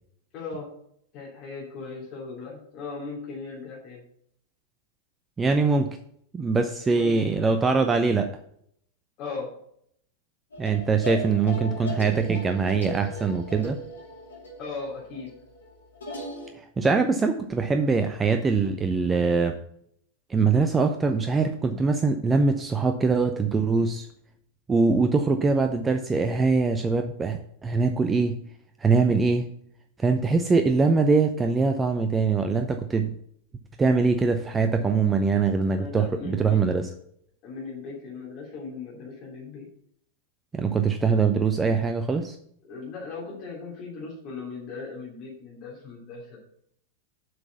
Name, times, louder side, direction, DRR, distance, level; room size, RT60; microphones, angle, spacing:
voice 1, 0.3-0.7 1.1-4.0 6.9-7.5 9.2-9.5 14.6-15.3 35.7-36.6 37.4-39.7 42.6-46.4, left 4 dB, 35° left, -5 dB, 3.1 m, -38 dB
voice 2, 5.4-5.9 6.3-8.3 10.6-13.8 16.6-19.6 20.3-24.1 24.7-28.4 28.8-29.5 30.0-33.2 33.8-36.9 40.5-42.4, right 4 dB, 15° right, 6 dB, 0.6 m, -23 dB
sound 1, 10.5-16.5, left 1 dB, 70° left, 2.7 m, -38 dB
7.8 x 6.1 x 6.8 m, 0.69 s
figure-of-eight pair, 90°, 0 cm